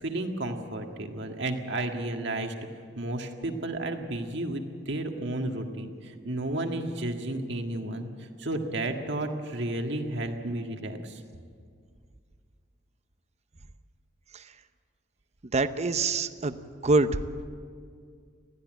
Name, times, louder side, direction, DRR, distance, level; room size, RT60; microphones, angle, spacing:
voice 1, 0.0-2.5 3.0-8.1 8.4-11.2, right 1 dB, 65° right, 4 dB, 1.8 m, -32 dB
voice 2, 15.5-16.6 16.8-17.1, right 3 dB, 35° right, 11 dB, 0.7 m, -25 dB
20.0 x 15.0 x 9.0 m, 2.1 s
head